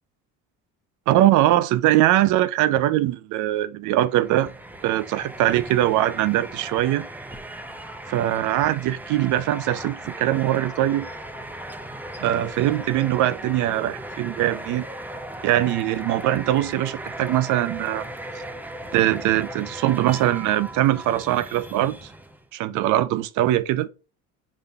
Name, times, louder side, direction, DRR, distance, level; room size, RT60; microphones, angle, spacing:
voice 1, 1.1-4.5 4.8-7.0 8.1-11.1 12.2-14.9 15.4-18.1 18.9-21.9 22.5-23.9, right 14 dB, 65° right, 0.5 m, -22 dB
sound 1, 4.0-22.5, right 1 dB, 5° right, 0.4 m, -37 dB
4.1 x 2.6 x 3.4 m
supercardioid pair, 90°, 33 cm